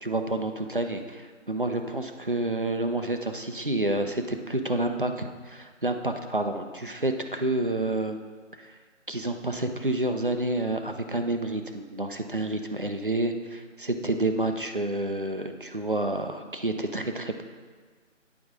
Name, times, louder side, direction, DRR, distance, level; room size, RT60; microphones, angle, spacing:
voice 1, 0.0-8.2 8.6-8.7 9.1-17.4, right 2 dB, 45° right, 6 dB, 0.4 m, -29 dB
9.2 x 4.9 x 3.6 m, 1.5 s
figure-of-eight pair, 160°, 38 cm